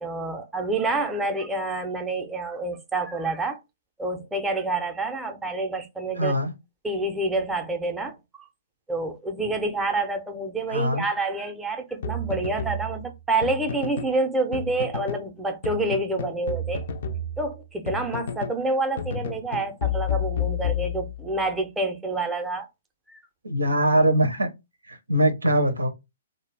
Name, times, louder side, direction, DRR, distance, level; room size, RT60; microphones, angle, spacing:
voice 1, 0.0-3.6 4.0-6.3 6.8-8.5 8.9-16.8 17.4-22.7 23.1-23.2, right 2 dB, 10° right, 0.5 m, -28 dB
voice 2, 6.2-6.5 10.7-11.0 23.4-24.5 24.9-25.9, right 1 dB, 90° right, 0.6 m, -22 dB
sound 1, 12.0-14.2 14.5-15.3 15.6-18.6 19.0-21.4, left 5 dB, 55° left, 0.4 m, -31 dB
2.3 x 2.0 x 3.3 m
figure-of-eight pair, 125°, 0 cm